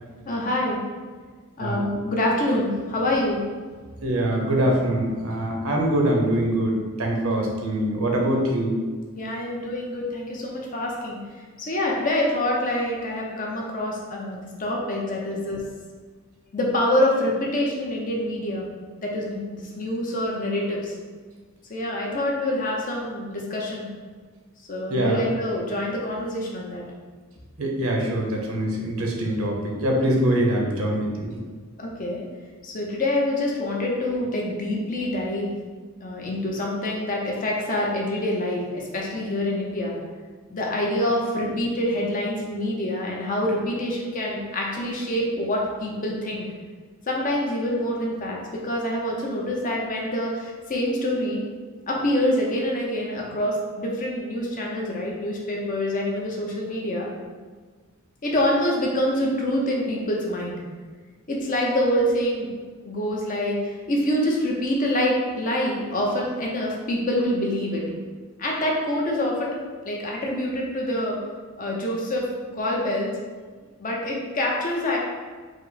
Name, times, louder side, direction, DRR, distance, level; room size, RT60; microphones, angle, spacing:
voice 1, 0.3-0.8 1.6-3.4 9.1-11.2 11.6-15.6 16.5-18.7 19.0-20.9 21.7-23.9 24.7-26.8 31.8-32.2 32.6-35.5 36.0-39.9 40.5-46.5 47.1-51.4 51.9-57.1 58.2-60.6 61.3-62.5 62.8-67.8 68.4-69.5 69.9-71.2 71.6-73.1 73.8-75.0, left 1 dB, 35° left, -2 dB, 0.7 m, -26 dB
voice 2, 4.0-8.7 24.9-25.3 27.6-31.4, right 1 dB, 75° right, 0 dB, 0.8 m, -23 dB
4.9 x 2.1 x 4.0 m, 1.5 s
head